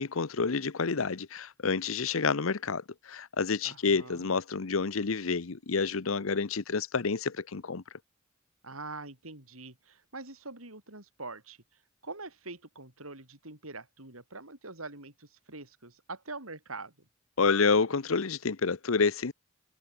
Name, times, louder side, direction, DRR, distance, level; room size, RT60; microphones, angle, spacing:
voice 1, 0.0-7.8 17.4-19.3, left 4 dB, 70° left, 0.8 m, -29 dB
voice 2, 3.6-4.3 8.6-16.9, right 3 dB, 85° right, 7.5 m, -44 dB
head